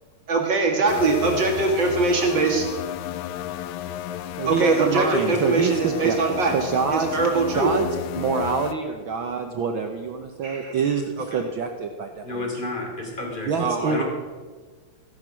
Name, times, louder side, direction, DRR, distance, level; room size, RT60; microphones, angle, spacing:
voice 1, 0.3-2.7 4.5-7.7 10.4-10.8 11.3-11.4 13.6-14.0, right 3 dB, 40° right, 2 dB, 2.4 m, -22 dB
sound 1, 0.9-8.7, left 12 dB, 85° left, 2.0 m, -33 dB
voice 2, 4.4-7.2 7.5-12.5 13.5-14.0, right 5 dB, 90° right, 5 dB, 1.1 m, -26 dB
voice 3, 12.2-13.5 13.9-14.0, left 2 dB, 15° left, 0 dB, 3.0 m, -30 dB
15.5 x 10.5 x 6.2 m, 1.4 s
omnidirectional pair, 3.5 m